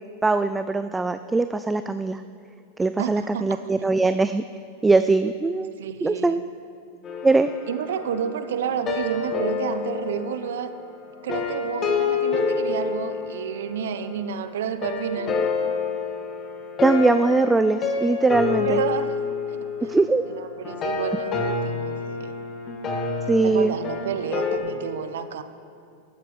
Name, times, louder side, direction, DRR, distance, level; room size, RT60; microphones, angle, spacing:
voice 1, 0.2-2.2 2.8-4.4 4.8-5.7 6.0-6.4 7.2-7.5 16.8-18.8 19.9-20.2 23.3-23.7, right 3 dB, 10° right, 11 dB, 0.3 m, -21 dB
voice 2, 3.0-3.6 5.8-6.4 7.7-10.7 11.2-15.4 18.6-19.1 19.5-19.9 20.3-22.3 23.4-25.4, right 8 dB, 75° right, 11 dB, 0.7 m, -30 dB
sound 1, 7.0-14.2 14.8-24.6, left 5 dB, 30° left, 1.6 m, -28 dB
13.0 x 9.4 x 5.1 m, 2.6 s
hypercardioid pair, 115°, 0 cm